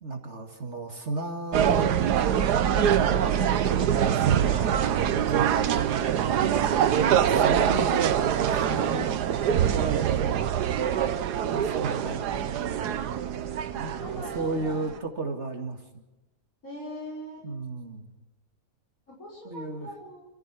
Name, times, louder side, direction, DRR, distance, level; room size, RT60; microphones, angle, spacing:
voice 1, 0.0-2.3 2.7-4.7 5.1-6.6 7.1-8.0 8.6-9.1 9.5-10.4 11.4-12.2 12.6-13.0 13.3-13.5 13.7-15.8 17.4-18.2 19.4-19.9, right 3 dB, 45° right, 2 dB, 2.4 m, -35 dB
sound 1, 1.5-15.0, right 9 dB, 90° right, 1.4 m, -24 dB
voice 2, 6.9-7.6 11.4-11.6 11.8-11.9 14.0-14.9 16.6-17.5 19.1-20.3, left 1 dB, 60° left, -4 dB, 6.4 m, -40 dB
28.0 x 15.0 x 6.2 m, 1.0 s
omnidirectional pair, 1.7 m